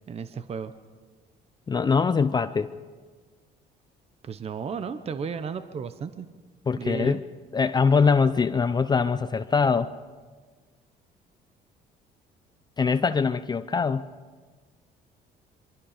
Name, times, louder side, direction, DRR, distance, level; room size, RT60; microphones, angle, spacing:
voice 1, 0.1-0.7 4.2-6.3 6.8-7.2, right 6 dB, 35° right, 11 dB, 0.9 m, -33 dB
voice 2, 1.7-2.7 6.7-7.2 7.5-9.9 12.8-14.0, left 5 dB, 25° left, 12 dB, 0.6 m, -23 dB
26.5 x 23.5 x 5.1 m, 1.5 s
cardioid pair, 110°, 17 cm